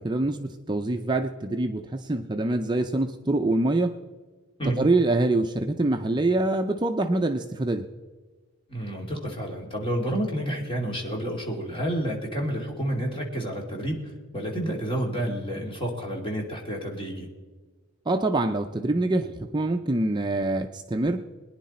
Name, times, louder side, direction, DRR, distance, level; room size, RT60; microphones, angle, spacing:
voice 1, 0.0-3.9 4.6-7.9 18.1-21.2, right 2 dB, 20° right, 5 dB, 0.5 m, -25 dB
voice 2, 8.7-17.3, right 1 dB, 25° left, 0 dB, 2.6 m, -30 dB
22.5 x 10.0 x 4.3 m, 1.4 s
head